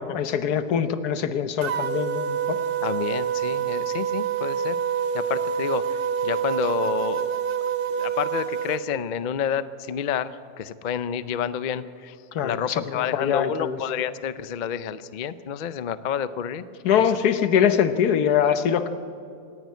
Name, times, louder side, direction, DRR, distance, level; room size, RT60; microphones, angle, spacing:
voice 1, 0.0-2.6 12.3-13.8 16.8-18.9, left 8 dB, 85° left, 11 dB, 1.4 m, -23 dB
sound 1, 1.6-8.8, right 8 dB, 80° right, 1.4 m, -27 dB
voice 2, 2.8-4.8 5.1-7.3 8.0-12.2 12.4-16.6 17.0-17.1 17.4-17.5, left 8 dB, 65° left, 14 dB, 0.4 m, -29 dB
25.5 x 10.5 x 9.4 m, 2.5 s
omnidirectional pair, 1.6 m